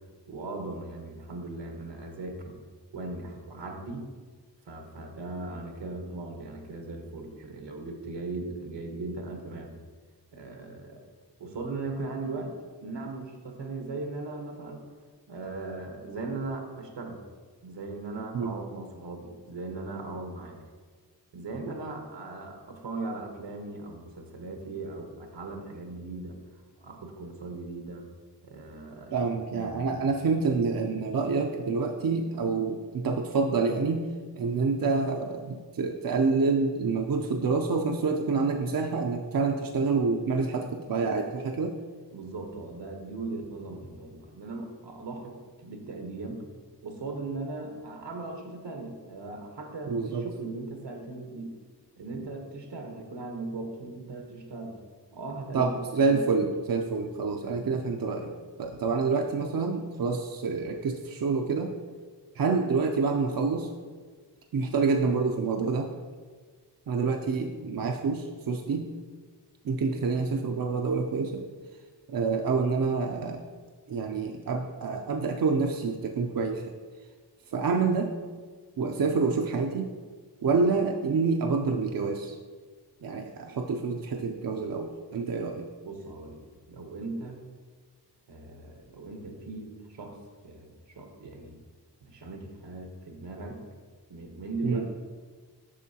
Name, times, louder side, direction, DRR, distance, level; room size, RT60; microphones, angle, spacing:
voice 1, 0.3-2.6 2.9-4.1 4.7-9.7 10.3-11.0 11.4-12.6 12.8-14.8 15.3-17.2 17.6-20.6 21.3-26.4 26.8-28.1 28.4-29.1 29.5-30.0 42.1-46.4 46.8-51.5 52.0-54.8 55.1-55.7 56.1-56.3 57.3-57.6 85.8-87.4 88.3-90.2 90.4-91.6 92.0-93.6 94.1-94.9, right 3 dB, 80° right, 3 dB, 1.1 m, -38 dB
voice 2, 29.1-34.0 34.4-41.7 49.9-50.2 55.5-58.3 58.6-61.7 62.3-63.7 64.5-65.9 66.9-68.9 69.6-71.4 72.1-73.4 73.9-76.7 77.5-78.1 78.8-79.9 80.4-82.4 83.0-85.7 94.6-94.8, right 4 dB, 55° right, 3 dB, 0.5 m, -27 dB
8.3 x 5.8 x 2.8 m, 1.5 s
wide cardioid pair, 85°, 42 cm